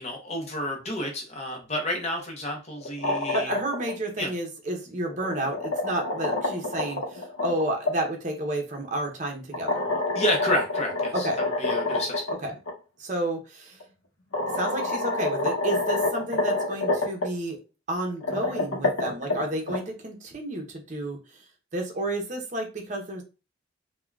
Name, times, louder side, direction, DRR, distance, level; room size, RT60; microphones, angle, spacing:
voice 1, 0.0-3.5 4.2-4.3 10.2-12.2, left 1 dB, 30° left, 1 dB, 0.7 m, -30 dB
sound 1, 2.8-3.9 5.1-7.9 9.5-12.3 12.7-12.8 13.8-13.9 14.3-17.3 18.1-19.8, left 2 dB, 75° left, 0.7 m, -27 dB
voice 2, 3.3-9.8 11.1-11.4 12.4-12.5 13.0-13.8 14.5-17.6 17.9-21.4 21.7-23.2, right 1 dB, 35° right, 2 dB, 0.7 m, -31 dB
3.6 x 2.2 x 2.3 m, 0.31 s
head